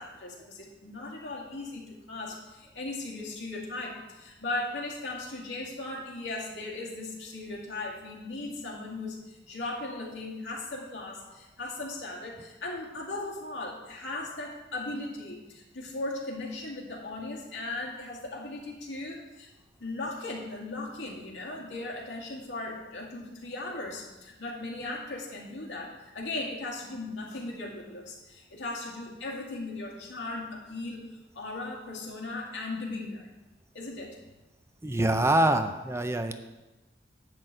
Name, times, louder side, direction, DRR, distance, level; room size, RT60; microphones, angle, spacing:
voice 1, 0.0-19.5 19.8-31.0 31.3-33.3 33.7-34.2, left 2 dB, 90° left, -2 dB, 2.2 m, -37 dB
voice 2, 34.8-36.3, right 1 dB, 15° right, 8 dB, 0.4 m, -25 dB
10.5 x 4.0 x 7.7 m, 1.1 s
head